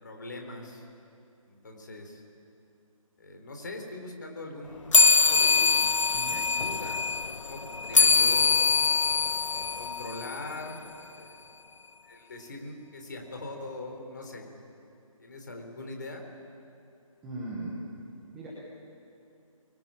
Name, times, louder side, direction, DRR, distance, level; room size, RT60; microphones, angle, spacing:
voice 1, 0.0-0.9 1.4-2.2 3.2-5.0 5.3-5.8 6.2-8.6 9.5-10.8 11.1-11.3 12.0-14.5 15.2-16.2, left 2 dB, 35° left, 3 dB, 3.8 m, -41 dB
sound 1, 4.9-10.7, left 4 dB, 60° left, 0.9 m, -23 dB
voice 2, 17.2-17.7 18.3-18.5, right 2 dB, 5° right, -8 dB, 1.1 m, -38 dB
29.5 x 23.0 x 8.9 m, 2.6 s
hypercardioid pair, 180°, 18 cm